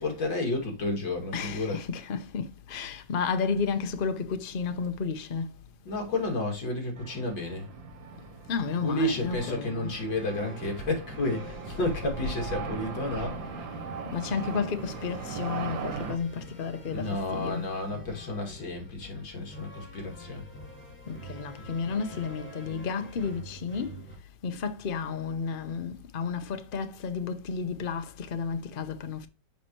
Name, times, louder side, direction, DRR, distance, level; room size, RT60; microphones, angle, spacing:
voice 1, 0.0-1.9 5.8-7.7 8.8-13.4 16.9-20.4, left 2 dB, 75° left, 3.1 m, -31 dB
voice 2, 1.3-5.5 8.5-9.9 14.1-17.7 21.1-24.0 24.4-29.3, left 5 dB, 50° left, 0.6 m, -32 dB
sound 1, 7.0-16.2, right 4 dB, 80° right, 2.0 m, -39 dB
sound 2, 9.8-24.2, equal, 5° left, 2.8 m, -46 dB
7.2 x 5.8 x 3.0 m
omnidirectional pair, 2.0 m